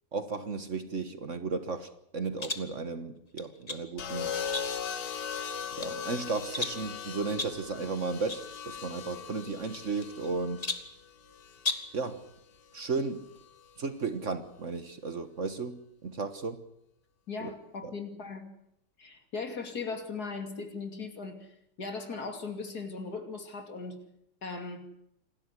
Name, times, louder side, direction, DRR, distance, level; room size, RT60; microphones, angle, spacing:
voice 1, 0.1-4.3 5.7-10.7 11.9-12.3 12.7-13.3 13.8-16.6 17.4-17.5 17.8-17.9, right 4 dB, 45° right, 10 dB, 1.6 m, -34 dB
sound 1, 2.4-2.7 3.4-3.9 4.5-5.0 5.5-6.0 6.5-6.9 7.4-7.7 8.3-8.5 8.7-8.8 9.7-10.3 10.6-11.0 11.6-12.0, left 3 dB, 25° left, 1.5 m, -36 dB
sound 2, 4.0-12.1 13.4-13.7, left 7 dB, 75° left, 2.1 m, -39 dB
voice 2, 17.3-18.5 19.0-21.5 21.8-24.0 24.4-24.8, left 4 dB, 60° left, 6 dB, 3.2 m, -38 dB
27.5 x 13.0 x 9.8 m, 0.76 s
omnidirectional pair, 1.9 m